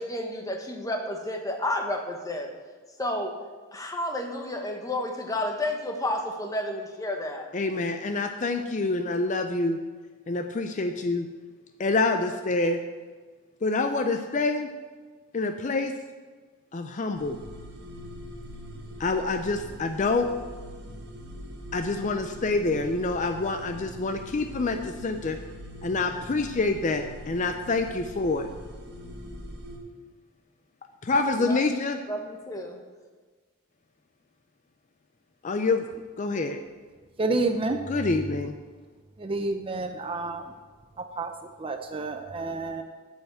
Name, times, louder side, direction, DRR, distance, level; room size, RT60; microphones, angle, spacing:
voice 1, 0.0-2.5 3.0-3.3 3.7-7.5 31.4-31.6 32.1-32.8, left 1 dB, 15° left, 3 dB, 1.1 m, -31 dB
voice 2, 7.5-9.8 10.3-11.3 11.8-12.8 13.6-14.7 15.3-15.9 16.7-17.4 19.0-20.3 21.7-25.4 25.8-28.5 31.0-32.0 35.4-35.8 36.2-36.6 37.9-38.5, left 3 dB, 35° left, 6 dB, 0.5 m, -26 dB
sound 1, 17.2-29.8, equal, 50° right, 1.3 m, -42 dB
voice 3, 37.2-37.8 39.2-40.4 41.2-41.3 41.6-42.8, right 3 dB, 25° right, 6 dB, 0.5 m, -29 dB
8.7 x 5.7 x 7.8 m, 1.4 s
head